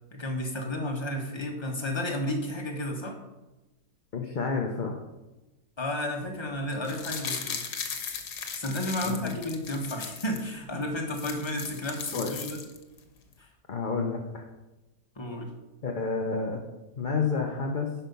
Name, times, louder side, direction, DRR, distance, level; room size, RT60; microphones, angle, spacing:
voice 1, 0.1-3.2 5.8-7.6 8.5-12.6 13.4-13.5 15.2-15.5, left 1 dB, 20° left, 2 dB, 1.2 m, -32 dB
voice 2, 4.1-5.0 9.0-9.3 12.1-12.4 13.7-14.5 15.8-16.6 17.0-17.9, left 4 dB, 40° left, 1 dB, 0.8 m, -30 dB
sound 1, 6.7-10.4 10.8-10.9 11.1-13.0 13.3-13.4, left 6 dB, 70° left, 1.6 m, -37 dB
10.5 x 5.8 x 5.4 m, 1.1 s
omnidirectional pair, 1.8 m